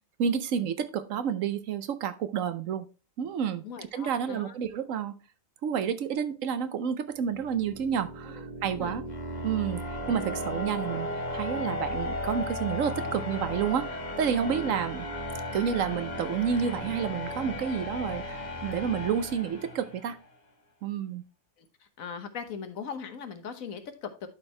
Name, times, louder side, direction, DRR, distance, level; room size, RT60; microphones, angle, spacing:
voice 1, 0.2-2.9 3.2-3.6 3.9-5.1 5.6-9.0 9.4-15.1 15.5-20.2 20.8-21.2, right 7 dB, 70° right, 11 dB, 1.1 m, -30 dB
voice 2, 3.6-4.5 8.4-8.5 8.8-9.0 22.0-24.3, left 6 dB, 80° left, 8 dB, 1.5 m, -39 dB
sound 1, 7.3-20.2, left 1 dB, 30° left, 1.6 m, -35 dB
11.5 x 4.5 x 3.2 m, 0.32 s
omnidirectional pair, 1.4 m